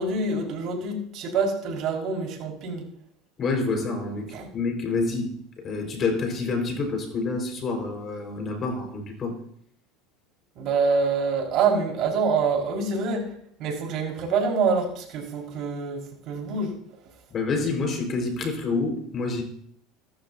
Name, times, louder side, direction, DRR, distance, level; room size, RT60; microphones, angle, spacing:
voice 1, 0.0-2.8 4.3-4.5 10.6-16.8, right 4 dB, 55° right, 1 dB, 5.4 m, -26 dB
voice 2, 3.4-9.4 17.3-19.4, left 3 dB, 40° left, 3 dB, 5.2 m, -28 dB
25.0 x 12.0 x 2.9 m, 0.68 s
hypercardioid pair, 75°, 0 cm